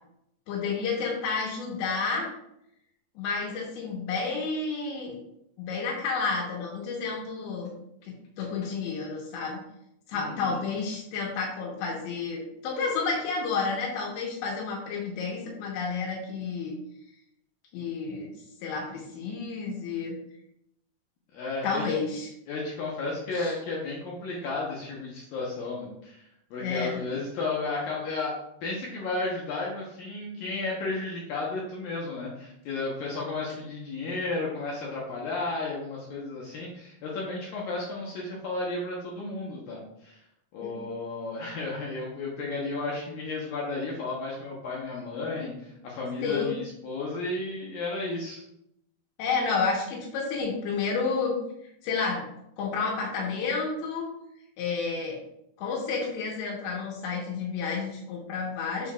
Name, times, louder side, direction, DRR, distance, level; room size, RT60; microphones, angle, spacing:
voice 1, 0.5-2.3 3.2-5.2 5.6-7.7 8.0-9.6 10.1-16.8 17.7-18.3 18.6-20.2 21.6-22.3 23.3-23.6 26.6-27.0 40.6-40.8 46.2-46.6 49.2-51.3 51.8-52.3 52.6-54.1 54.6-55.2 55.6-58.9, left 4 dB, 85° left, -2 dB, 3.5 m, -30 dB
voice 2, 10.1-10.6 21.3-21.8 22.5-26.2 26.5-40.2 40.5-48.4, left 3 dB, 70° left, -4 dB, 2.4 m, -33 dB
7.2 x 6.9 x 2.4 m, 0.79 s
omnidirectional pair, 5.0 m